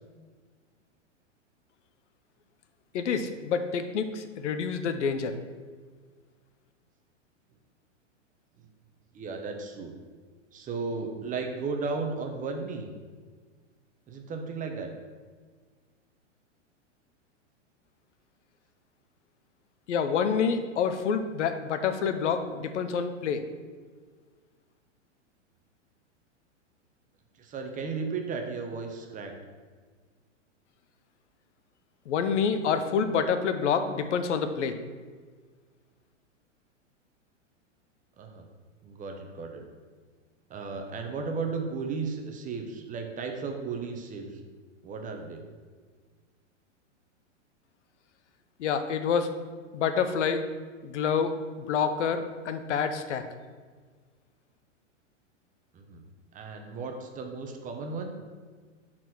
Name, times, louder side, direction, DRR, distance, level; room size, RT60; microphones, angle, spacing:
voice 1, 2.9-5.3 19.9-23.4 32.1-34.8 48.6-49.3 49.7-50.4 50.8-51.4 51.7-53.2, left 6 dB, 70° left, 9 dB, 0.8 m, -27 dB
voice 2, 9.1-9.9 10.5-12.9 14.1-14.9 27.4-29.3 38.2-38.4 38.8-39.6 40.5-44.4 44.8-45.4 55.7-56.0 56.3-58.1, right 4 dB, 20° right, 3 dB, 0.9 m, -35 dB
6.6 x 4.3 x 6.3 m, 1.5 s
hypercardioid pair, 120°, 37 cm